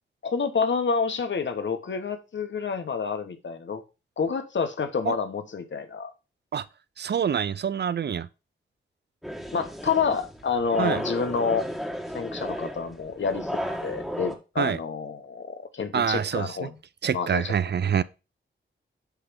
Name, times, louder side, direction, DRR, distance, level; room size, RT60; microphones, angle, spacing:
voice 1, 0.2-3.8 4.2-6.1 9.5-11.6 12.1-13.5 13.8-16.7 17.1-17.5, left 5 dB, 65° left, 1.4 m, -28 dB
voice 2, 7.0-8.3 10.8-11.0 14.6-14.8 15.9-16.6 17.0-18.0, right 7 dB, 55° right, 0.5 m, -26 dB
sound 1, 9.2-14.4, equal, ahead, 1.8 m, -34 dB
9.9 x 3.4 x 5.2 m
cardioid pair, 75°, 21 cm